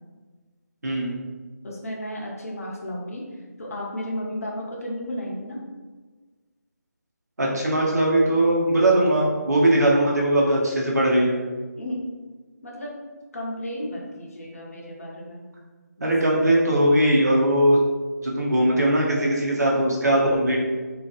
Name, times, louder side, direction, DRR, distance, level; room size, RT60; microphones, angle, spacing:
voice 1, 1.6-3.2 3.6-5.6 11.8-12.0 12.6-13.0 13.3-15.4 16.0-16.1, left 1 dB, 55° left, -3 dB, 0.6 m, -33 dB
voice 2, 7.4-11.4 16.0-17.8 18.2-20.6, right 1 dB, 65° right, -3 dB, 0.8 m, -20 dB
2.6 x 2.4 x 2.4 m, 1.3 s
figure-of-eight pair, 155°, 9 cm